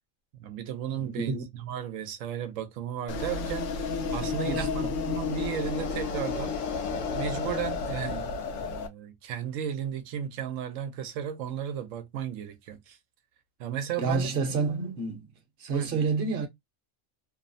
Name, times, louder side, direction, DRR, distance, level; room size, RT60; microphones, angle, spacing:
voice 1, 0.4-6.6 7.1-13.0 13.6-14.3 15.7-16.1, right 9 dB, 90° right, 1.0 m, -35 dB
voice 2, 0.9-1.4 4.4-4.9 14.0-15.3 15.6-16.5, right 4 dB, 50° right, 0.9 m, -29 dB
sound 1, 3.1-8.9, left 5 dB, 75° left, 1.0 m, -31 dB
2.9 x 2.0 x 2.5 m
omnidirectional pair, 1.3 m